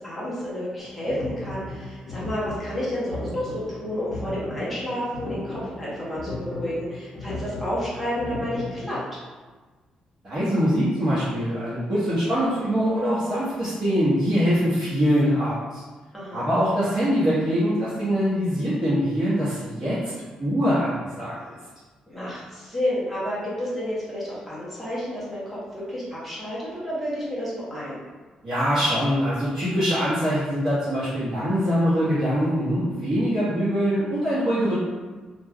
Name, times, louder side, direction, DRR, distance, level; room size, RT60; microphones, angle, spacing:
voice 1, 0.0-9.2 16.1-16.4 22.1-28.0, equal, ahead, -9 dB, 0.8 m, -30 dB
sound 1, 0.8-8.9, left 1 dB, 40° left, 0.7 m, -36 dB
voice 2, 10.2-15.8 16.3-20.1 20.4-21.5 28.4-34.7, equal, 35° right, -14 dB, 1.0 m, -23 dB
2.4 x 2.2 x 3.4 m, 1.3 s
cardioid pair, 170°, 2 cm